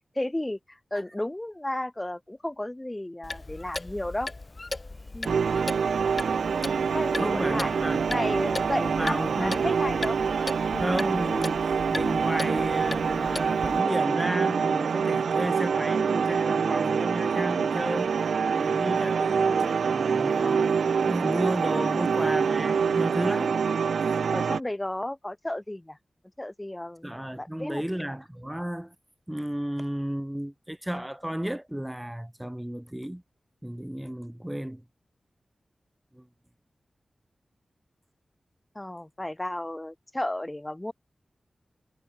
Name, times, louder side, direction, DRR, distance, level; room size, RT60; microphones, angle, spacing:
voice 1, 0.2-4.3 5.1-5.4 6.7-7.8 8.1-10.2 10.7-10.8 19.1-19.7 21.7-22.1 24.3-26.0 26.4-27.1 27.4-27.8 38.8-40.9, left 1 dB, 20° left, 0.6 m, -33 dB
Clock, 3.2-13.8, left 2 dB, 40° left, 1.0 m, -38 dB
sound 1, 4.9-15.2, right 4 dB, 65° right, 5.7 m, -66 dB
sound 2, 5.2-24.6, right 6 dB, 90° right, 0.3 m, -26 dB
voice 2, 6.8-8.1 8.8-9.6 10.8-18.1 18.6-20.7 21.0-23.6 27.0-28.9 29.3-33.2 33.6-34.8 36.1-36.3, equal, 10° right, 1.0 m, -33 dB
cardioid pair, 45°, 0 cm